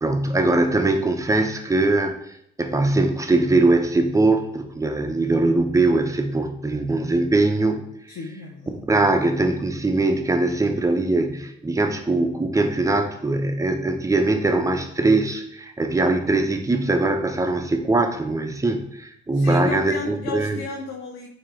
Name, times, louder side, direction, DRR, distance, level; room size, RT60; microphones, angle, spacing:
voice 1, 0.0-7.8 8.7-20.6, right 2 dB, 15° right, 6 dB, 0.8 m, -21 dB
voice 2, 8.1-8.8 19.3-21.3, left 4 dB, 85° left, 0 dB, 0.8 m, -33 dB
8.7 x 2.9 x 3.7 m, 0.73 s
cardioid pair, 90°, 20 cm